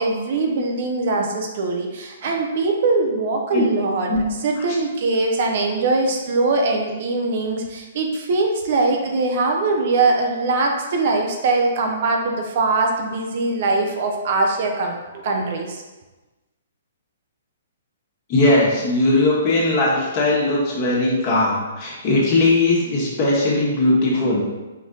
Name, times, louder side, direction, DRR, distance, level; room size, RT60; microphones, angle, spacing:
voice 1, 0.0-4.1 4.4-15.8, right 3 dB, 55° right, 2 dB, 0.7 m, -22 dB
voice 2, 18.3-24.4, left 2 dB, 35° left, -5 dB, 1.5 m, -19 dB
5.2 x 2.6 x 3.8 m, 1.1 s
hypercardioid pair, 145°, 0 cm